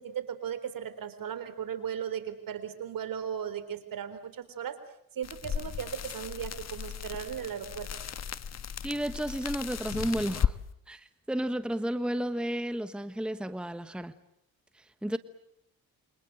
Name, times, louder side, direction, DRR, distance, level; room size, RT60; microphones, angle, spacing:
voice 1, 0.0-4.8 5.2-7.9, right 8 dB, 65° right, 12 dB, 4.1 m, -36 dB
sound 1, 5.2-10.6, left 8 dB, 45° left, 1.3 m, -35 dB
voice 2, 8.8-10.6 10.9-14.1 14.8-15.2, right 1 dB, 5° right, 11 dB, 1.2 m, -32 dB
29.0 x 25.5 x 7.9 m, 0.76 s
cardioid pair, 95°, 37 cm